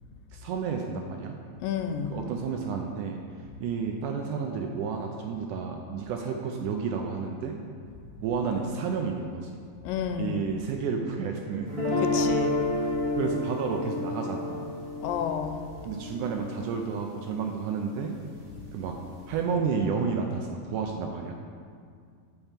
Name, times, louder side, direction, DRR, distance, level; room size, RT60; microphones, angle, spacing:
voice 1, 0.3-1.4 2.1-3.2 3.6-7.6 8.2-9.5 10.2-11.7 13.2-14.9 15.9-18.2 18.7-19.0 19.3-21.3, right 5 dB, 80° right, 2 dB, 1.9 m, -31 dB
voice 2, 1.6-2.2 9.8-10.4 12.0-12.6 15.0-15.6, left 8 dB, 80° left, 6 dB, 2.2 m, -31 dB
sound 1, 11.7-17.8, left 2 dB, 25° right, 1.6 m, -30 dB
8.8 x 4.6 x 7.3 m, 2.2 s
omnidirectional pair, 4.1 m